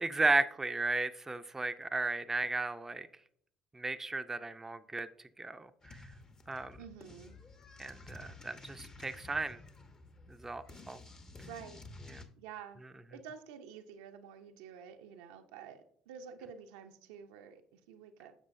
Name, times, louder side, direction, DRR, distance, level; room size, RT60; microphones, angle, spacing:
voice 1, 0.0-3.1 3.7-5.1 5.4-6.0 6.5-6.8 7.8-9.6 10.3-11.0 12.1-12.2, right 3 dB, 15° right, 0.5 m, -34 dB
sound 1, 5.8-12.3, left 2 dB, 30° left, 0.9 m, -52 dB
voice 2, 6.8-7.4 10.7-10.9 11.5-11.8 12.3-12.8 13.1-18.3, right 7 dB, 80° right, 0.5 m, -50 dB
7.4 x 6.0 x 2.6 m
hypercardioid pair, 60°, 2 cm